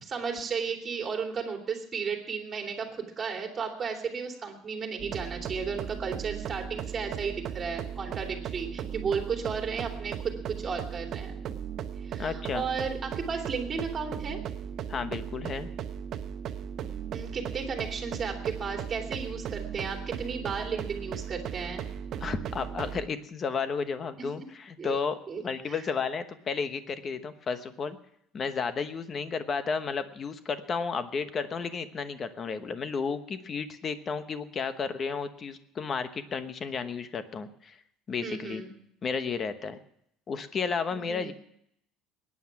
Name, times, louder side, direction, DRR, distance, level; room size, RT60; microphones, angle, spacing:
voice 1, 0.0-11.3 12.0-14.4 17.1-21.9 24.8-25.0 25.3-25.4 25.7-25.8 38.2-38.7 40.9-41.3, right 5 dB, 25° right, 2 dB, 2.7 m, -34 dB
sound 1, 5.0-23.1, right 8 dB, 40° right, 0.9 m, -37 dB
voice 2, 12.2-12.6 14.9-15.7 22.2-28.0 28.3-37.8 38.1-38.6 39.0-39.8 40.3-41.3, left 5 dB, 30° left, 10 dB, 1.0 m, -32 dB
21.5 x 9.8 x 5.9 m, 0.73 s
cardioid pair, 150°, 0 cm